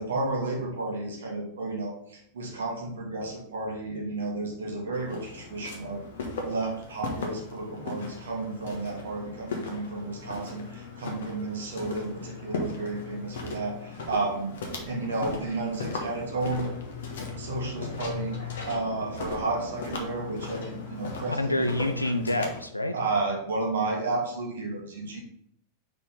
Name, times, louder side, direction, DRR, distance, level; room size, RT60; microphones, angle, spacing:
voice 1, 0.0-6.0 6.4-14.5 14.9-16.7 17.4-18.4 18.7-21.6 22.9-25.2, right 3 dB, 65° right, -1 dB, 1.6 m, -32 dB
Walk footsteps, 4.9-22.6, left 3 dB, 60° left, 1.1 m, -37 dB
voice 2, 21.3-23.0, left 1 dB, 85° left, 7 dB, 0.6 m, -27 dB
4.3 x 4.1 x 5.3 m, 0.70 s
figure-of-eight pair, 90°, 0 cm